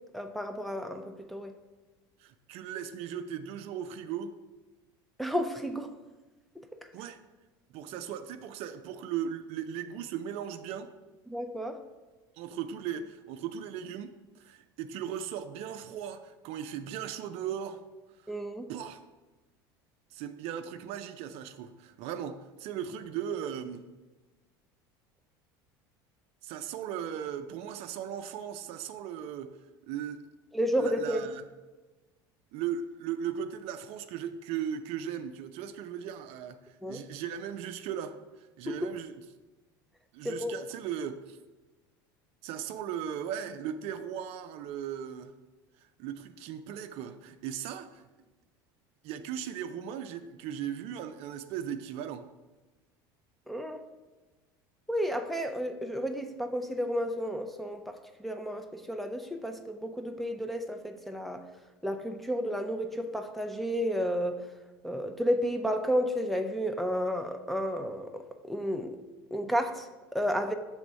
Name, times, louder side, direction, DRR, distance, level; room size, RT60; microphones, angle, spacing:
voice 1, 0.1-1.5 5.2-5.9 11.3-11.8 18.3-18.7 30.5-31.2 36.8-37.0 38.7-38.8 40.2-40.5 53.5-53.8 54.9-57.9 58.2-61.4 61.8-64.4 64.8-68.1 68.4-69.0 69.3-70.5, equal, ahead, 5 dB, 0.5 m, -32 dB
voice 2, 2.2-4.3 6.9-7.2 7.7-10.9 12.4-17.8 18.7-19.0 20.1-23.8 26.4-29.6 29.9-30.2 30.8-31.4 32.5-38.2 38.6-39.1 40.1-41.4 42.4-45.3 46.0-48.0 49.0-52.3, right 9 dB, 60° right, 9 dB, 0.4 m, -37 dB
6.1 x 3.4 x 5.2 m, 1.2 s
hypercardioid pair, 90°, 12 cm